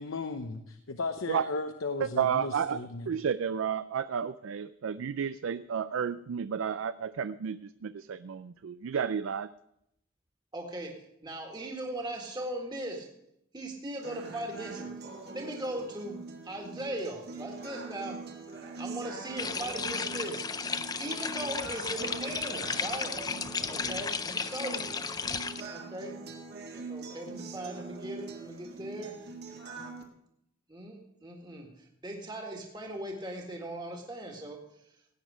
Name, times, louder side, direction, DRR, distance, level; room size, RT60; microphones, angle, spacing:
voice 1, 0.0-3.1, left 3 dB, 80° left, 7 dB, 0.8 m, -35 dB
voice 2, 2.0-9.5, right 7 dB, 75° right, 14 dB, 0.4 m, -32 dB
voice 3, 10.5-13.1 13.5-18.2 18.8-20.5 21.0-23.1 23.7-24.9 25.7-26.2 26.9-29.2 30.7-34.6, right 1 dB, 20° right, 1 dB, 1.8 m, -39 dB
sound 1, 14.0-30.0, right 4 dB, 50° right, 1.9 m, -43 dB
sound 2, 19.4-25.6, left 5 dB, 20° left, 0.4 m, -34 dB
17.0 x 9.2 x 5.0 m, 0.78 s
head